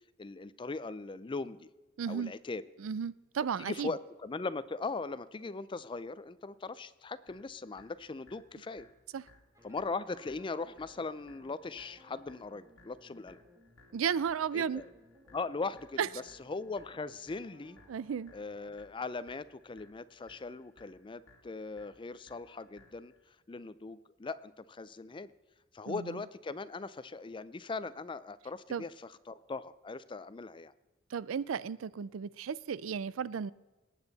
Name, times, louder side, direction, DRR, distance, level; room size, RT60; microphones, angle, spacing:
voice 1, 0.2-1.7 2.1-2.6 3.6-8.9 9.6-13.4 14.5-14.9 15.3-16.0 16.4-17.8 18.3-23.1 23.5-25.3 25.7-30.7, left 3 dB, 25° left, 0.4 m, -40 dB
voice 2, 2.0-2.3 2.8-3.9 9.1-9.3 13.9-14.8 16.0-16.1 17.9-18.3 25.9-26.2 28.7-28.8 31.1-33.5, right 7 dB, 75° right, 0.4 m, -34 dB
sound 1, 7.3-23.3, left 2 dB, 75° left, 1.9 m, -63 dB
sound 2, 9.5-18.8, equal, 15° right, 1.7 m, -61 dB
19.0 x 9.1 x 4.1 m
head